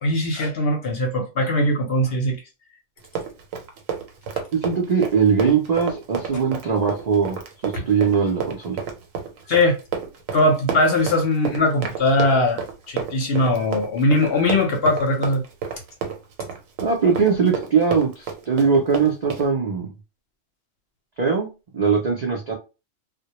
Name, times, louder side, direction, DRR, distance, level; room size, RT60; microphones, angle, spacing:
voice 1, 0.0-2.4 9.5-9.8 10.3-15.4, left 1 dB, 55° left, 0.8 m, -20 dB
Run, 3.0-19.5, right 6 dB, 85° right, 1.0 m, -31 dB
voice 2, 4.5-7.4 7.6-8.8 16.8-19.9 21.2-22.5, right 5 dB, 65° right, 0.4 m, -21 dB
2.1 x 2.1 x 2.8 m
omnidirectional pair, 1.4 m